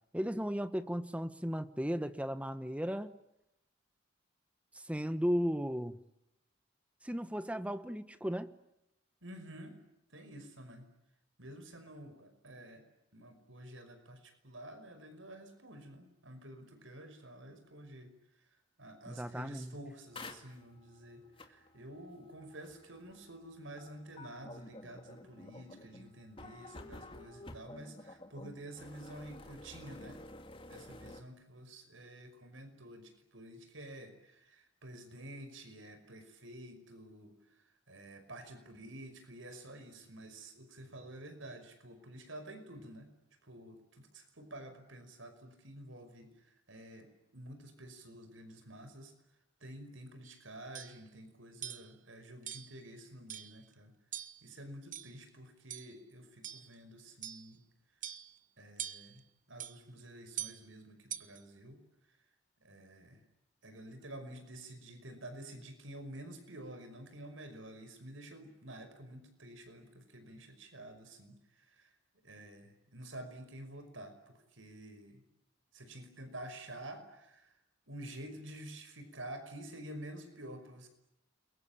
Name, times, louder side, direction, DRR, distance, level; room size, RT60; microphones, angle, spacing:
voice 1, 0.1-3.1 4.7-6.0 7.0-8.5 19.1-19.7, equal, 5° right, 12 dB, 1.2 m, -35 dB
voice 2, 9.2-9.8 10.1-10.9 11.4-12.8 13.1-18.1 18.8-30.2 30.7-43.1 43.4-47.1 47.3-49.1 49.6-53.9 54.4-57.6 58.6-59.2 59.5-61.8 62.6-63.2 63.6-71.9 72.2-75.2 75.7-77.6 77.9-80.9, right 1 dB, 75° right, 8 dB, 5.5 m, -50 dB
sound 1, 20.1-31.2, left 2 dB, 25° left, 2.4 m, -51 dB
sound 2, 50.2-50.4 50.7-51.0 51.6-51.9 52.5-52.8 53.3-53.6 54.1-54.5 54.9-55.3 55.7-55.9 56.4-56.7 57.2-57.5 58.0-58.4 58.8-59.2 59.6-59.8 60.4-60.6 61.1-61.4, right 10 dB, 40° right, 1.2 m, -43 dB
29.5 x 22.5 x 8.8 m, 0.86 s
head